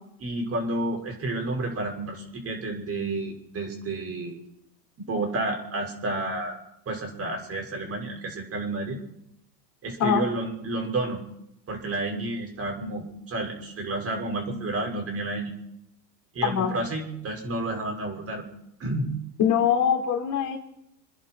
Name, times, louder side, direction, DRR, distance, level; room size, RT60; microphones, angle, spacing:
voice 1, 0.2-4.4 5.1-9.0 9.8-11.2 11.7-15.5 16.3-18.4 18.8-19.1, right 2 dB, 30° right, 2 dB, 6.0 m, -30 dB
voice 2, 16.4-16.7 19.4-20.6, left 8 dB, 35° left, 3 dB, 3.4 m, -23 dB
28.0 x 10.5 x 4.7 m, 0.79 s
hypercardioid pair, 110°, 49 cm